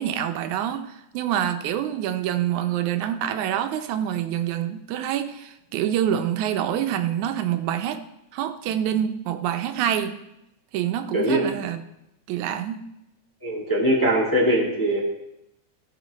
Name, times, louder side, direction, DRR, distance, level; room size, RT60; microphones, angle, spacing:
voice 1, 0.0-8.0 8.3-10.2 10.7-11.8 12.3-12.8, right 10 dB, 85° right, 8 dB, 2.1 m, -26 dB
voice 2, 13.4-15.0, right 1 dB, 10° left, -4 dB, 1.2 m, -21 dB
16.0 x 5.7 x 4.1 m, 0.87 s
omnidirectional pair, 3.3 m